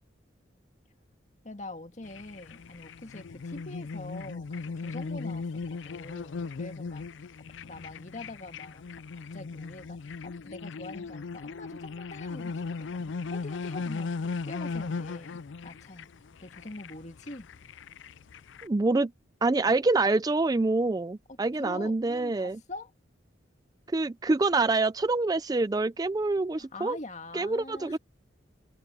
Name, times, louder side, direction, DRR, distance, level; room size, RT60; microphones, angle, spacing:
voice 1, 1.4-7.1 7.6-14.1 14.4-16.1 16.4-17.5 21.3-22.9 26.5-28.0, left 2 dB, 40° left, 1.9 m, -44 dB
sound 1, 2.0-18.7, left 4 dB, 75° left, 0.5 m, -38 dB
voice 2, 18.6-19.1 19.4-22.6 23.9-27.0 27.3-28.0, right 3 dB, 20° right, 0.4 m, -26 dB
head